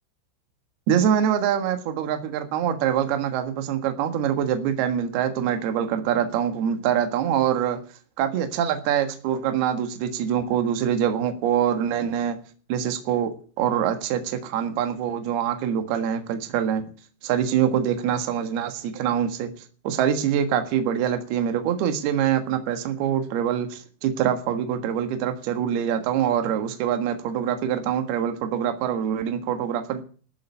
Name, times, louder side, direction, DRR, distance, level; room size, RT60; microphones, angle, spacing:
voice 1, 0.9-7.8 8.2-12.4 12.7-16.8 17.2-19.5 19.8-30.0, right 9 dB, 60° right, 8 dB, 3.1 m, -24 dB
13.5 x 7.7 x 9.7 m, 0.41 s
omnidirectional pair, 5.9 m